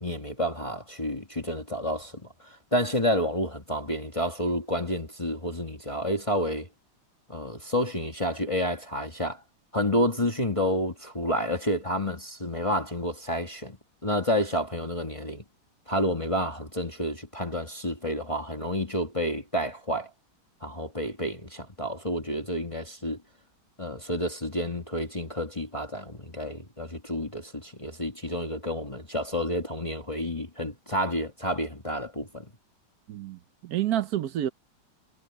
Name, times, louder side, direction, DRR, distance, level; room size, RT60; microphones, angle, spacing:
voice 1, 0.0-6.7 7.3-9.4 9.7-13.8 14.0-15.4 15.9-20.1 20.6-23.2 23.8-32.5, equal, 15° left, 1.4 m, -29 dB
voice 2, 33.1-34.5, right 11 dB, 65° right, 1.0 m, -29 dB
omnidirectional pair, 2.2 m